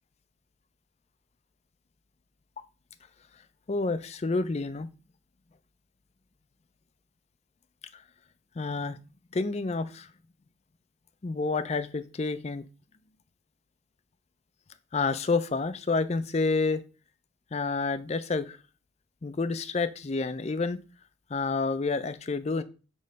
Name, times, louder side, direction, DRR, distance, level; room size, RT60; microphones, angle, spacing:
voice 1, 3.7-4.9 7.9-8.0 8.6-9.0 9.3-10.1 11.2-12.6 14.9-16.8 17.5-18.6 19.2-20.8 21.3-22.6, left 3 dB, 35° left, 12 dB, 0.4 m, -29 dB
6.4 x 3.1 x 5.2 m, 0.34 s
head